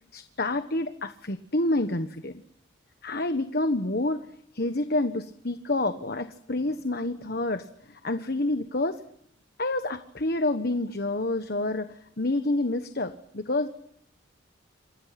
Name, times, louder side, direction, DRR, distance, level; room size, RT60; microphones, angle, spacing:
voice 1, 0.1-2.4 3.0-4.3 4.5-9.0 9.6-13.7, left 2 dB, 55° left, 9 dB, 1.4 m, -28 dB
29.0 x 27.5 x 6.0 m, 0.72 s
head